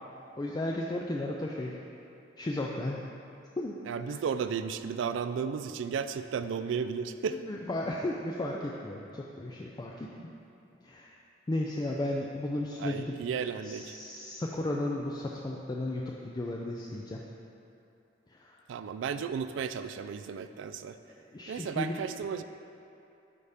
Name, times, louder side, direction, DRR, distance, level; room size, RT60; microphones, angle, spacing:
voice 1, 0.4-1.7 2.4-3.0 3.6-3.8 4.1-4.2 7.3-10.3 10.8-11.1 11.5-13.2 13.6-17.2 18.3-18.5 21.3-22.0, left 1 dB, 20° left, -2 dB, 0.4 m, -34 dB
voice 2, 3.9-7.4 12.8-13.9 18.7-21.0 21.5-22.4, right 6 dB, 75° right, 10 dB, 0.3 m, -34 dB
8.4 x 3.5 x 5.0 m, 2.8 s
head